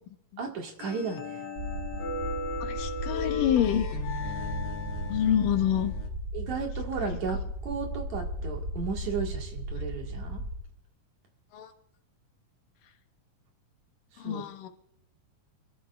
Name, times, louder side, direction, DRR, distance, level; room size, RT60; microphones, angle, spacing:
voice 1, 0.4-1.5 6.3-10.4 14.1-14.4, right 5 dB, 60° right, 1 dB, 3.1 m, -34 dB
sound 1, 0.8-6.1, left 4 dB, 60° left, 1.9 m, -36 dB
sound 2, 1.5-10.6, equal, 30° right, 3.3 m, -35 dB
voice 2, 2.6-3.9 4.3-4.4 5.1-5.9 11.5-11.7 14.2-14.7, left 10 dB, 85° left, 5 dB, 2.9 m, -27 dB
27.0 x 13.0 x 2.5 m, 0.75 s
omnidirectional pair, 3.8 m